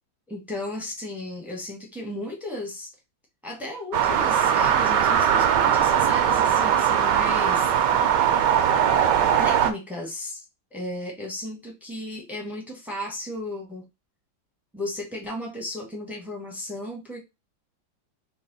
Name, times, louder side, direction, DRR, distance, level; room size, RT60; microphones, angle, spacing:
voice 1, 0.3-2.9 3.4-7.7 9.4-10.4 10.7-13.8 14.7-17.2, left 1 dB, ahead, 1 dB, 0.6 m, -34 dB
sound 1, 3.9-9.7, right 9 dB, 70° right, 1.1 m, -20 dB
4.1 x 2.1 x 3.9 m, 0.23 s
omnidirectional pair, 2.1 m